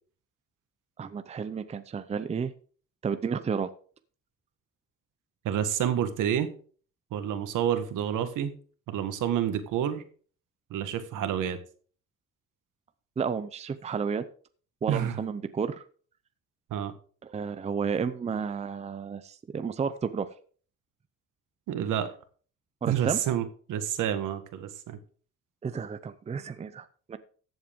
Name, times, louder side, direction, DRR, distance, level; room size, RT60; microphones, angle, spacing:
voice 1, 1.0-2.5 3.0-3.7 13.2-14.3 14.8-15.8 17.3-20.3 22.8-23.2 25.6-27.2, right 6 dB, 20° right, 12 dB, 0.6 m, -31 dB
voice 2, 5.4-6.5 7.1-8.5 8.9-10.0 10.7-11.6 14.9-15.2 16.7-16.9 21.7-22.1 22.9-25.0, right 9 dB, 75° right, 9 dB, 1.7 m, -29 dB
14.0 x 8.0 x 3.6 m, 0.43 s
cardioid pair, 150°, 31 cm